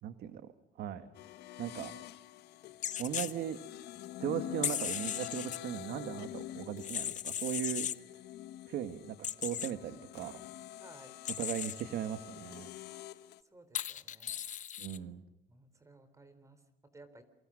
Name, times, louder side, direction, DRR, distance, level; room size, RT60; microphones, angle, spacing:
voice 1, 0.0-0.4 0.8-1.1 1.6-1.9 3.0-3.6 4.2-7.9 8.7-10.3 11.4-12.7 14.8-15.2, right 10 dB, 75° right, 10 dB, 1.7 m, -38 dB
sound 1, 1.1-13.4, left 14 dB, 75° left, 1.2 m, -47 dB
sound 2, 2.8-3.3 4.6-5.6 6.8-8.0 9.2-9.7 11.2-11.8 13.7-15.0, left 10 dB, 45° left, 0.9 m, -37 dB
voice 2, 10.8-11.1 13.5-14.4 15.5-17.2, right 2 dB, 20° right, 11 dB, 4.0 m, -57 dB
27.5 x 24.5 x 6.5 m, 0.86 s
cardioid pair, 110°, 17 cm